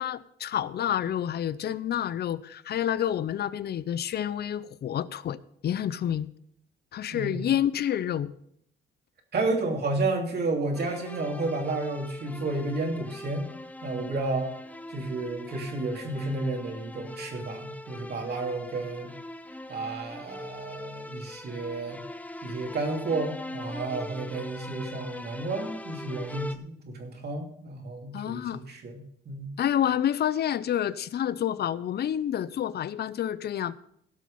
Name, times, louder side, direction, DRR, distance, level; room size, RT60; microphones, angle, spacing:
voice 1, 0.0-5.4 5.6-6.3 6.9-8.3 28.1-28.6 29.6-33.8, left 10 dB, 55° left, 0.6 m, -28 dB
voice 2, 7.1-7.4 9.3-13.5 13.8-14.5 14.9-19.1 19.7-22.0 22.4-29.5, right 3 dB, 55° right, 2.9 m, -31 dB
sound 1, 10.7-26.6, left 1 dB, 5° left, 0.7 m, -41 dB
16.0 x 6.3 x 5.3 m
cardioid pair, 90°, 20 cm